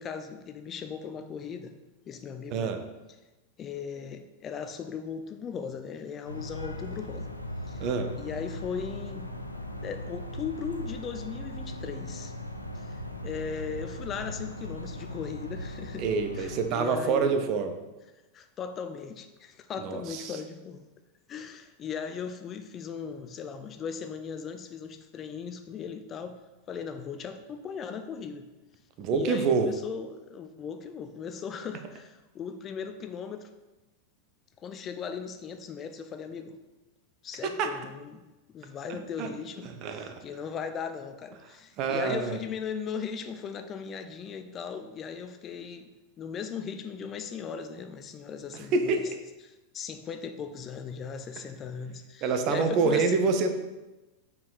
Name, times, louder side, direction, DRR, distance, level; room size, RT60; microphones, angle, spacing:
voice 1, 0.0-1.7 2.1-2.7 3.6-7.3 7.7-7.8 8.2-9.3 9.8-12.3 12.7-16.0 16.3-17.3 18.3-20.8 21.3-26.4 26.7-28.4 29.1-33.5 34.6-36.6 37.2-38.2 38.5-45.9 46.2-49.1 49.4-53.2, left 6 dB, 25° left, 8 dB, 0.5 m, -38 dB
voice 2, 2.5-2.8 7.8-8.1 16.0-17.8 19.8-20.4 29.0-29.7 37.4-37.7 38.9-39.3 39.6-40.2 41.8-42.4 48.5-49.1 52.2-53.5, right 4 dB, 40° right, 7 dB, 0.8 m, -27 dB
sound 1, 6.3-16.7, left 1 dB, 85° left, 0.5 m, -38 dB
7.2 x 4.7 x 4.0 m, 1.1 s
figure-of-eight pair, 90°, 0 cm